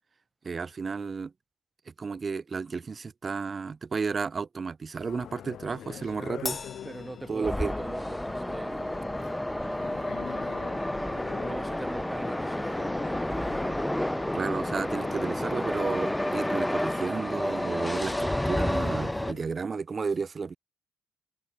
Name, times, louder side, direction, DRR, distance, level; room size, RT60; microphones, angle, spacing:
voice 1, 0.4-1.3 2.0-6.6 7.3-7.7 14.3-20.6, right 5 dB, 35° right, 1.1 m, -32 dB
sound 1, 5.0-19.4, left 10 dB, 65° left, 1.6 m, -45 dB
Crash cymbal, 6.5-8.1, left 5 dB, 35° left, 1.6 m, -39 dB
voice 2, 6.8-8.8 9.3-10.1 11.0-13.5, right 2 dB, 15° right, 6.4 m, -43 dB
sound 2, 7.4-19.3, left 1 dB, 5° left, 1.2 m, -30 dB
cardioid pair, 90°, 0 cm